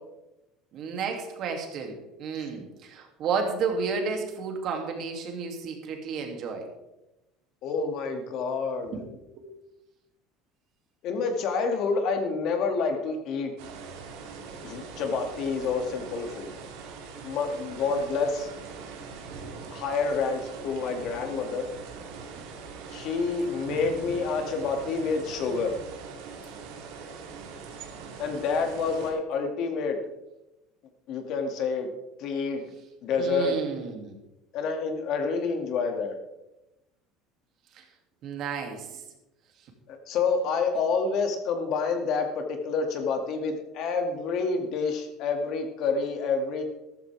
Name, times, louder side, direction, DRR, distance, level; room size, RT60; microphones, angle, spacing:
voice 1, 0.7-6.7 8.9-9.0 9.4-9.5 33.2-34.1 37.7-37.8 38.2-39.0, right 5 dB, 50° right, 3 dB, 2.6 m, -32 dB
voice 2, 7.6-9.0 11.0-13.5 14.6-16.6 17.2-18.5 19.7-21.7 22.9-25.8 28.2-30.0 31.1-31.9 32.2-32.6 33.0-33.6 34.5-36.1 39.9-46.6, left 4 dB, 55° left, 4 dB, 2.3 m, -28 dB
sound 1, 13.6-29.1, right 5 dB, 85° right, 2.9 m, -42 dB
13.5 x 13.5 x 3.5 m, 0.94 s
cardioid pair, 140°, 0 cm